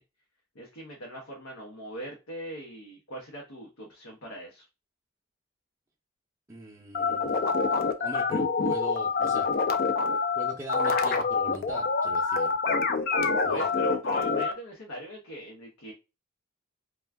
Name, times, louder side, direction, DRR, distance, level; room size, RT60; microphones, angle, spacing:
voice 1, 0.5-4.7 13.4-15.9, right 1 dB, 85° left, 0.8 m, -40 dB
voice 2, 6.5-7.6 8.0-9.5 10.4-12.6 13.4-13.6, right 1 dB, 15° right, 0.5 m, -41 dB
Alien TV Transmission, 6.9-14.5, left 4 dB, 45° left, 0.3 m, -26 dB
2.4 x 2.3 x 3.2 m
head